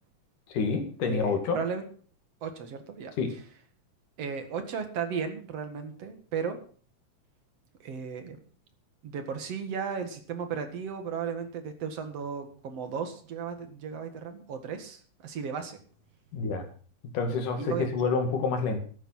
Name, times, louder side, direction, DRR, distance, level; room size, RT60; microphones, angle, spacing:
voice 1, 0.5-1.6 3.2-3.3 16.3-16.6 17.1-18.8, left 4 dB, 75° left, 5 dB, 3.8 m, -28 dB
voice 2, 1.1-1.8 2.4-3.1 4.2-6.6 7.8-8.4 9.0-15.8 17.6-17.9, right 6 dB, 55° right, 7 dB, 2.7 m, -35 dB
13.5 x 10.5 x 5.7 m, 0.43 s
omnidirectional pair, 3.7 m